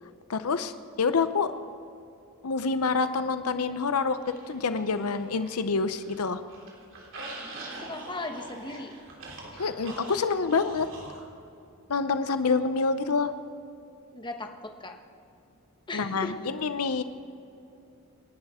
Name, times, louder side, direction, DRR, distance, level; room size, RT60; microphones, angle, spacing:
voice 1, 0.3-0.7 1.0-1.5 2.4-6.4 9.6-10.9 11.9-13.3 15.9-17.0, left 4 dB, 85° left, 10 dB, 0.7 m, -27 dB
sound 1, 4.2-5.6 5.9-11.2, right 2 dB, 60° right, 3.2 m, -43 dB
voice 2, 7.8-8.9 14.1-15.0 15.9-16.3, left 2 dB, 20° left, 4 dB, 1.1 m, -37 dB
27.5 x 11.5 x 3.7 m, 2.7 s
head